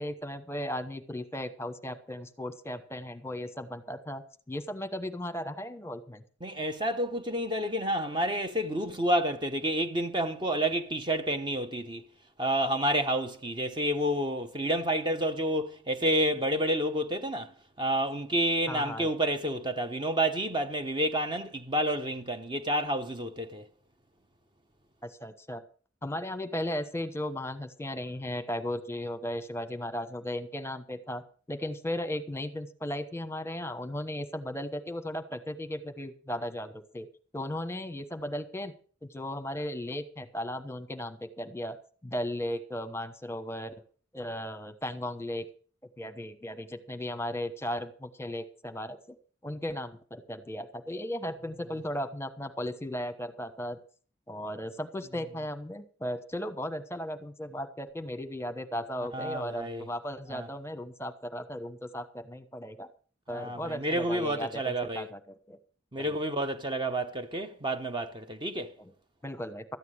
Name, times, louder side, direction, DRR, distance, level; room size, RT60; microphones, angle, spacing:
voice 1, 0.0-4.2 4.5-6.2 18.7-19.1 25.0-25.6 26.0-31.2 31.5-37.1 37.3-38.7 39.0-41.8 42.0-43.7 44.1-45.5 46.0-49.0 49.4-53.8 54.3-62.9 63.3-65.2 65.5-65.6 66.0-66.2 69.2-69.6, left 1 dB, 15° left, 1.1 m, -36 dB
voice 2, 6.4-12.0 12.4-17.5 17.8-23.7 59.1-59.9 60.3-60.5 63.3-65.1 65.9-68.8, right 1 dB, 25° right, 0.8 m, -29 dB
13.5 x 9.4 x 6.4 m
head